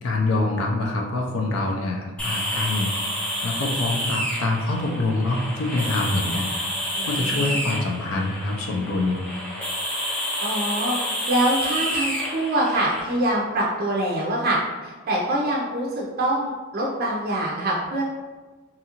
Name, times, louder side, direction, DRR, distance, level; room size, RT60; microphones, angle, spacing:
voice 1, 0.0-6.7 7.0-9.2, left 2 dB, 80° left, 0 dB, 0.4 m, -25 dB
sound 1, 2.2-13.0, equal, 5° left, 0.5 m, -29 dB
voice 2, 7.0-7.6 10.4-11.0 11.3-18.0, right 1 dB, 45° right, -4 dB, 0.4 m, -25 dB
2.8 x 2.4 x 2.8 m, 1.3 s
head